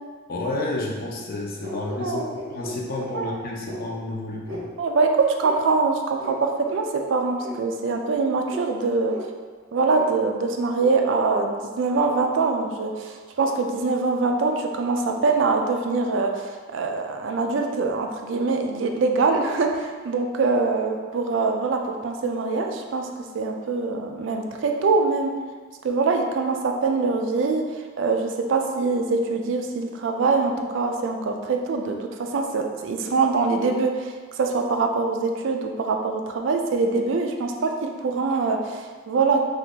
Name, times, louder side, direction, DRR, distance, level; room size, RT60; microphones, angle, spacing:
voice 1, 0.3-2.2 2.5-4.7, left 2 dB, 50° left, -1 dB, 0.5 m, -30 dB
sound 1, 1.6-3.1 3.6-3.8 4.4-4.7 5.4-5.6 6.2-6.4 6.6-6.8 7.4-7.5 8.4-8.6 9.0-9.2 9.8-10.0, equal, 85° right, 0.7 m, -36 dB
voice 2, 1.7-2.3 3.1-3.4 4.8-9.1 9.7-23.1 23.3-25.3 25.8-39.4, right 4 dB, 65° right, 3 dB, 0.3 m, -24 dB
2.8 x 2.4 x 3.6 m, 1.5 s
head